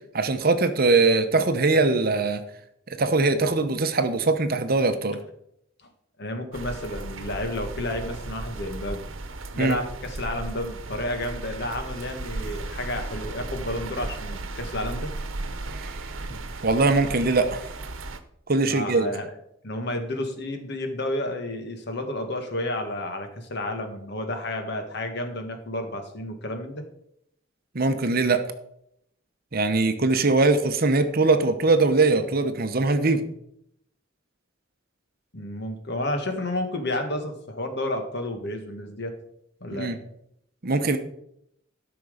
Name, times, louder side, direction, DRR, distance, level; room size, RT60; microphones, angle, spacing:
voice 1, 0.1-2.4 3.0-5.2 9.6-9.8 15.8-15.9 16.3-17.7 18.5-19.1 27.7-28.4 29.5-33.2 39.7-40.0 40.6-41.0, right 3 dB, 50° right, 9 dB, 0.9 m, -21 dB
voice 2, 6.2-9.0 9.5-15.1 18.6-19.3 19.6-26.8 35.3-39.1 39.6-39.9, left 1 dB, 55° left, 6 dB, 1.6 m, -31 dB
sound 1, 6.5-18.2, right 2 dB, 90° right, 1.0 m, -35 dB
12.5 x 5.9 x 5.1 m, 0.75 s
head